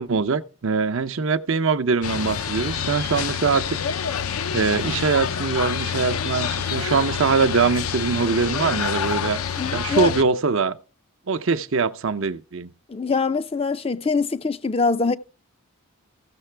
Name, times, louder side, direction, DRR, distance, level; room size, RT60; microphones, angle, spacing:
voice 1, 0.0-3.8 4.5-9.4 9.7-10.8 11.3-12.7, right 4 dB, 60° right, 0.6 m, -22 dB
sound 1, 2.0-10.2, left 7 dB, 70° left, 0.6 m, -27 dB
voice 2, 9.6-10.1 12.9-15.1, left 4 dB, 25° left, 0.4 m, -23 dB
15.5 x 6.6 x 3.3 m
head